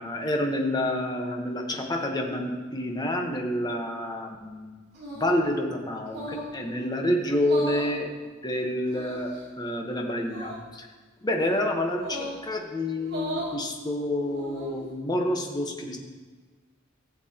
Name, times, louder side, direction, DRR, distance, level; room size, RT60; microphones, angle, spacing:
voice 1, 0.0-4.8 5.1-8.2 8.4-10.9 11.2-16.0, left 1 dB, 20° left, 2 dB, 1.1 m, -28 dB
sound 1, 4.9-5.4 6.1-6.5 7.4-7.9 8.9-9.4 10.2-10.6 12.0-12.4 13.0-13.5 14.2-14.8, right 1 dB, 60° right, 2.9 m, -37 dB
15.5 x 7.2 x 2.9 m, 1.4 s
head